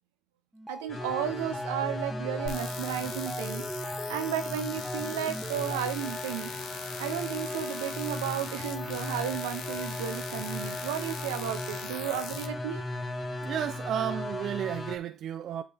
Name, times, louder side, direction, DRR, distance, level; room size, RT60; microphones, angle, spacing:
sound 1, 0.5-6.3, right 1 dB, 5° right, 1.0 m, -43 dB
voice 1, 0.7-6.5 7.0-12.9, right 10 dB, 85° right, 0.8 m, -34 dB
sound 2, 0.9-15.0, left 2 dB, 35° left, 1.8 m, -36 dB
sound 3, 2.5-12.4, left 5 dB, 70° left, 1.7 m, -41 dB
voice 2, 13.4-15.6, right 10 dB, 60° right, 0.4 m, -32 dB
8.4 x 4.9 x 3.5 m
hypercardioid pair, 55°, 0 cm